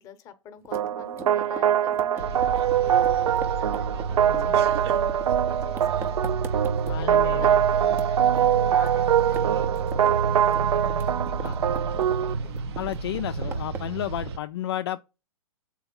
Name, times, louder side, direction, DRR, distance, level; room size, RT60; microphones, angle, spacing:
voice 1, 0.0-6.2 7.0-11.1 11.7-12.5, left 7 dB, 20° left, 0.9 m, -45 dB
sound 1, 0.6-7.5 7.8-8.9 9.2-10.1 10.4-12.3 12.6-14.0, right 4 dB, 10° right, 0.6 m, -40 dB
sound 2, 0.7-12.3, right 10 dB, 85° right, 0.4 m, -23 dB
sound 3, 2.2-14.4, right 4 dB, 50° right, 0.8 m, -31 dB
voice 2, 4.3-4.6 6.9-7.6 11.4-11.5 12.8-15.0, left 12 dB, 45° left, 0.4 m, -32 dB
6.9 x 4.5 x 5.3 m
hypercardioid pair, 150°, 18 cm